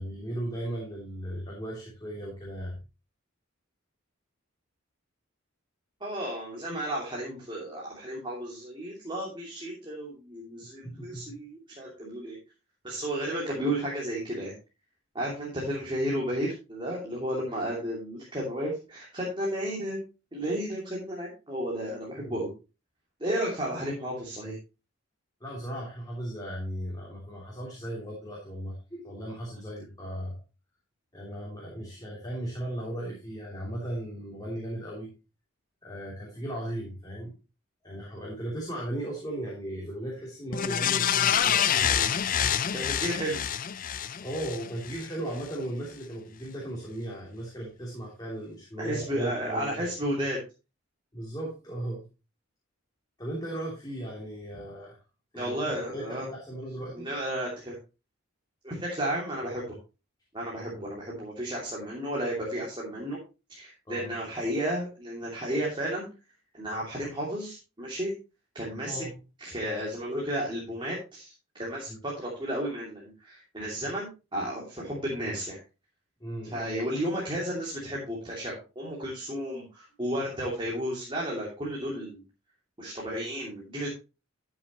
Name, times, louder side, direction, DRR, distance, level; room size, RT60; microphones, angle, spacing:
voice 1, 0.0-2.8 10.5-11.3 22.2-22.5 25.4-30.4 31.1-35.1 35.8-37.3 37.8-42.5 44.2-49.9 51.1-52.1 53.2-55.0 55.3-57.1 60.7-60.9 63.9-64.1 67.0-67.1 68.9-69.1 71.9-72.0 76.2-76.7, right 1 dB, 20° left, -4 dB, 3.1 m, -37 dB
voice 2, 6.0-12.4 12.8-14.5 15.1-20.0 20.3-22.5 23.2-24.5 42.7-43.4 48.8-50.4 55.3-56.3 56.9-57.8 58.6-59.6 60.3-63.2 63.5-66.1 66.5-68.1 68.5-69.0 69.4-75.6 76.5-82.2 82.8-83.9, right 1 dB, 25° right, -4 dB, 2.8 m, -33 dB
sound 1, 40.5-45.1 45.5-45.6, left 9 dB, 40° left, 0.4 m, -27 dB
12.5 x 7.2 x 3.1 m, 0.30 s
head